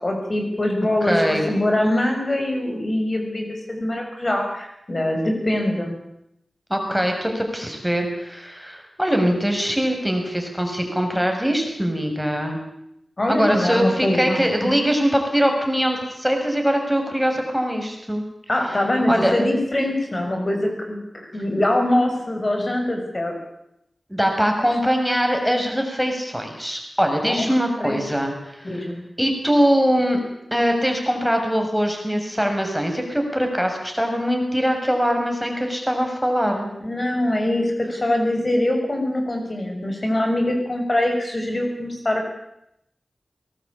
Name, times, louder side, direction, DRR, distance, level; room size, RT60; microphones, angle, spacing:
voice 1, 0.0-6.0 13.2-14.7 18.5-23.3 24.6-24.7 27.2-27.5 27.8-28.0 28.6-29.0 36.8-42.3, left 1 dB, 45° left, 3 dB, 6.6 m, -23 dB
voice 2, 1.0-1.4 6.7-12.6 13.3-18.2 19.1-19.4 24.1-28.8 29.2-30.2 30.5-36.7, equal, ahead, 3 dB, 6.7 m, -22 dB
22.5 x 19.5 x 8.7 m, 0.81 s
cardioid pair, 45°, 0 cm